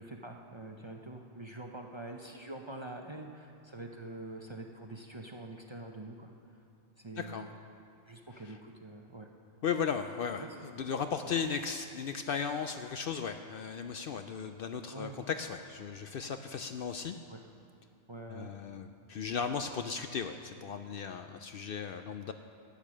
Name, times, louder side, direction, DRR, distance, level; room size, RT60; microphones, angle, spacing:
voice 1, 0.0-6.3 7.0-7.5 8.1-9.3 10.4-10.5 14.9-15.2 17.3-17.4 18.1-18.5, right 2 dB, 30° right, 2 dB, 0.6 m, -45 dB
voice 2, 7.2-7.5 8.3-8.6 9.6-17.2 18.3-22.3, left 6 dB, 60° left, 7 dB, 0.6 m, -36 dB
13.5 x 8.8 x 6.3 m, 2.6 s
omnidirectional pair, 1.2 m